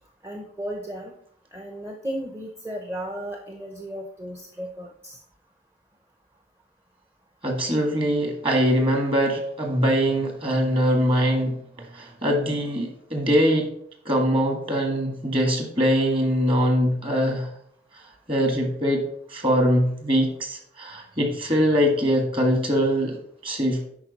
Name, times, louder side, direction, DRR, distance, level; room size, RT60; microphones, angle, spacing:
voice 1, 0.2-1.1 1.5-5.2, equal, 15° right, 2 dB, 0.6 m, -34 dB
voice 2, 7.4-11.6 11.9-13.7 14.0-17.5 18.3-23.9, equal, 30° right, 3 dB, 1.5 m, -22 dB
10.5 x 4.7 x 4.0 m, 0.67 s
head